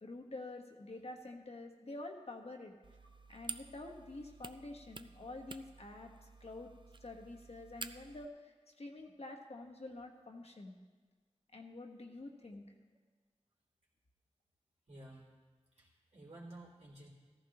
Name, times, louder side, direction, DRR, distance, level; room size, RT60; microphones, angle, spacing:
voice 1, 0.0-2.7 3.3-6.1 6.4-6.7 7.0-10.7 11.5-12.7, left 2 dB, 65° left, 3 dB, 1.3 m, -48 dB
sound 1, 2.8-8.3, right 4 dB, 45° right, 0.4 m, -50 dB
voice 2, 14.9-15.3 15.7-17.1, right 1 dB, 90° right, -4 dB, 3.1 m, -53 dB
14.5 x 14.5 x 3.0 m, 1.4 s
wide cardioid pair, 75°, 11 cm